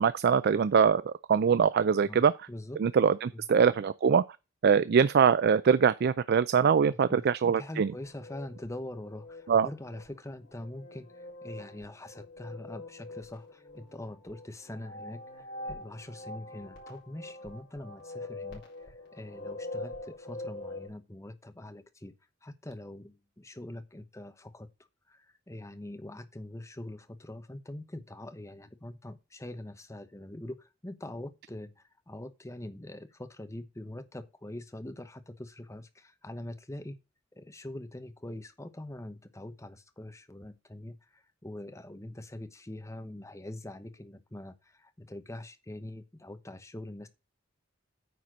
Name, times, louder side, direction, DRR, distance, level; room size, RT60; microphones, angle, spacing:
voice 1, 0.0-2.3 2.8-4.2 4.6-7.9 9.5-9.7, right 6 dB, 55° right, 0.4 m, -23 dB
voice 2, 2.1-2.8 3.3-3.4 6.9-22.1 22.4-24.7 25.1-37.0 37.3-47.1, left 1 dB, 15° left, 1.0 m, -43 dB
sound 1, 7.9-20.9, left 2 dB, 60° left, 3.8 m, -44 dB
9.3 x 4.3 x 6.2 m
head